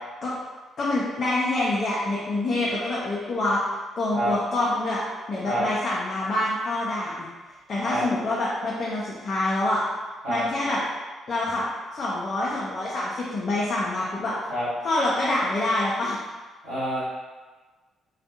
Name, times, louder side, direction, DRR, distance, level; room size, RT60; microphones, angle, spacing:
voice 1, 0.8-3.6 4.0-5.0 5.3-7.3 7.7-9.8 10.3-10.8 11.3-11.6 11.9-14.3 14.8-16.2, left 2 dB, 50° left, -7 dB, 0.5 m, -26 dB
voice 2, 16.6-17.0, right 1 dB, 85° right, -18 dB, 1.0 m, -27 dB
2.4 x 2.2 x 2.6 m, 1.3 s
figure-of-eight pair, 40°, 0 cm